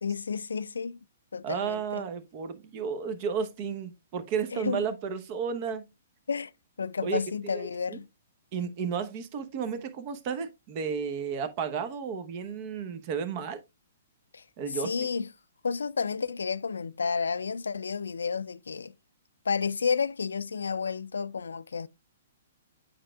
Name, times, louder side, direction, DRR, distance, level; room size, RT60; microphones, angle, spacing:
voice 1, 0.0-1.0 1.3-2.0 4.5-4.8 6.3-6.5 6.8-8.1 14.3-14.4 14.7-15.3 15.6-18.9 19.4-21.9, left 5 dB, 80° left, 0.3 m, -31 dB
voice 2, 1.4-5.9 7.0-7.2 7.5-8.0 8.5-13.6 14.6-14.9, right 6 dB, 40° right, 0.9 m, -33 dB
8.6 x 5.1 x 2.3 m
hypercardioid pair, 125°, 0 cm